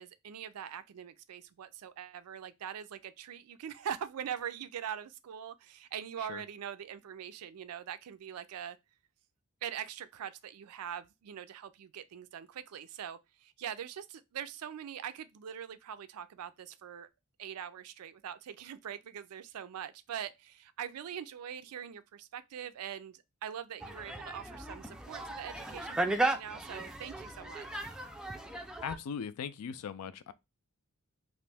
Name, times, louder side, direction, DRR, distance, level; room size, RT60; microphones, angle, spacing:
voice 1, 0.0-8.8 9.6-17.1 17.4-27.8, right 9 dB, 90° right, 0.4 m, -43 dB
sound 1, 23.8-29.0, right 2 dB, 5° right, 0.3 m, -36 dB
voice 2, 28.8-30.3, left 7 dB, 85° left, 0.4 m, -39 dB
3.0 x 2.6 x 3.3 m
head